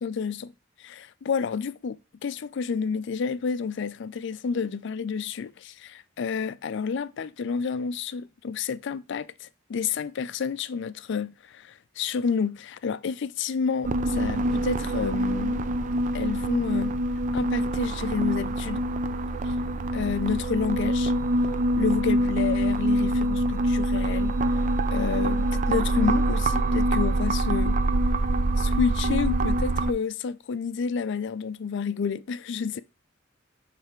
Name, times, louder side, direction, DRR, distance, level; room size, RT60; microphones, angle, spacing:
voice 1, 0.0-0.5 0.8-15.7 16.1-17.0 17.3-18.9 19.4-19.5 19.9-21.1 21.8-24.6 24.9-27.8 28.6-32.8, left 5 dB, 65° left, 0.4 m, -30 dB
sound 1, 13.8-29.9, right 1 dB, 40° right, 0.4 m, -25 dB
6.6 x 3.3 x 4.4 m
head